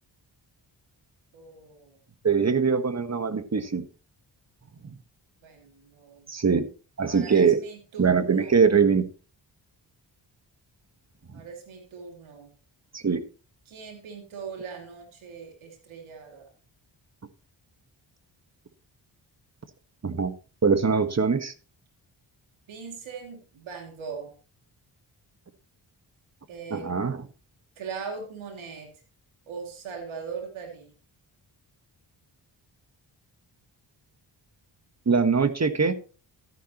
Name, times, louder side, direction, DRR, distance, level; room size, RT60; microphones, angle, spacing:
voice 1, 1.3-2.0 5.4-6.3 7.0-8.7 11.3-12.5 13.7-16.5 22.7-24.3 26.5-26.9 27.8-28.9 29.5-30.9, right 5 dB, 90° right, 2 dB, 2.7 m, -40 dB
voice 2, 2.2-3.8 4.8-4.9 6.3-6.7 7.0-7.6 8.0-9.1 12.9-13.2 20.0-20.3 20.6-21.5 26.7-27.2 35.0-35.9, right 5 dB, 35° right, 10 dB, 1.5 m, -22 dB
13.0 x 10.5 x 3.0 m, 0.35 s
cardioid pair, 55°, 46 cm